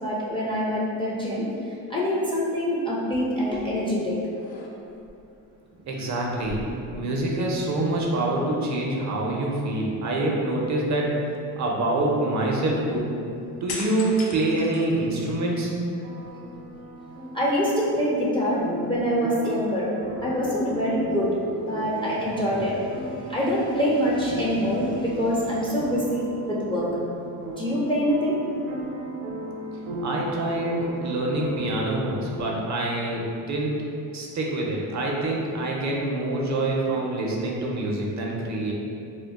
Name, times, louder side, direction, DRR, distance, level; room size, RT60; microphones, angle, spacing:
voice 1, 0.0-1.5 1.9-4.2 17.3-19.9 20.2-21.3 21.7-22.8 23.3-26.9 27.6-28.4, equal, 15° left, -7 dB, 0.4 m, -25 dB
sound 1, 3.6-3.9 4.3-5.1 6.3-7.6 7.9-8.0 13.7-15.5 16.0-16.9, left 3 dB, 60° left, 0.6 m, -40 dB
voice 2, 5.9-6.6 6.9-11.2 11.6-13.1 13.6-15.7 30.0-33.8 34.1-38.7, right 2 dB, 45° right, -2 dB, 0.5 m, -26 dB
sound 2, 15.8-32.4, right 1 dB, 85° right, 0.6 m, -37 dB
2.3 x 2.2 x 3.4 m, 2.7 s
supercardioid pair, 80°, 42 cm